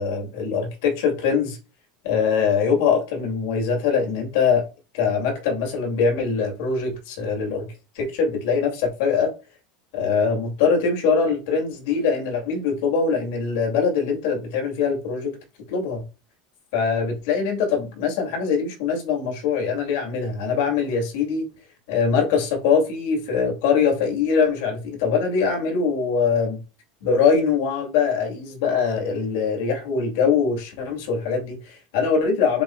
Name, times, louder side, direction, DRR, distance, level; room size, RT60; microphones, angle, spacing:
voice 1, 0.0-1.6 2.0-4.6 4.9-7.7 7.9-9.3 9.9-15.4 15.7-16.0 16.7-21.4 21.9-26.6 27.0-32.6, left 5 dB, 75° left, 2.4 m, -22 dB
7.5 x 2.9 x 2.3 m
supercardioid pair, 140°, 0 cm